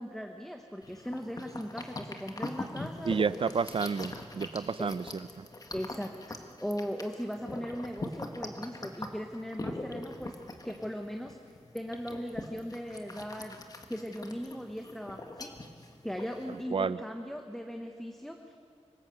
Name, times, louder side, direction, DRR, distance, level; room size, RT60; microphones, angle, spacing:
voice 1, 0.0-3.2 4.8-4.9 5.7-6.1 6.6-10.4 10.6-11.4 11.7-13.6 13.9-15.5 16.0-18.5, equal, 5° left, 3 dB, 1.1 m, -38 dB
sound 1, 0.8-16.6, left 2 dB, 35° left, 1.5 m, -42 dB
voice 2, 3.0-5.5 16.5-17.0, right 5 dB, 55° right, 15 dB, 0.6 m, -31 dB
26.0 x 17.5 x 7.9 m, 2.3 s
wide cardioid pair, 140°, 11 cm